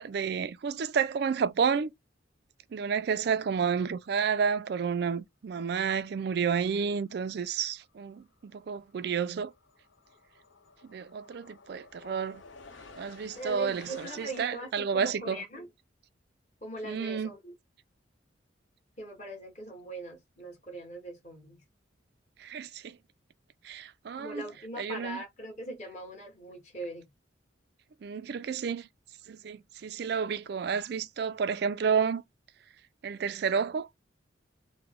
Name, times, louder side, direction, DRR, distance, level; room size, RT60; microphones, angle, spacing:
voice 1, 0.0-1.9 2.7-9.5 10.9-12.4 13.0-15.4 16.8-17.3 22.4-23.0 23.6-24.4 24.8-25.2 28.0-28.9 29.3-32.2 33.0-33.9, right 6 dB, 55° right, 0.3 m, -30 dB
sound 1, 7.6-7.9 8.1-14.4, left 4 dB, 85° left, 0.8 m, -53 dB
voice 2, 13.3-15.7 16.6-17.5 19.0-21.6 24.2-27.0, right 1 dB, 40° left, 1.5 m, -41 dB
3.0 x 2.1 x 3.6 m
head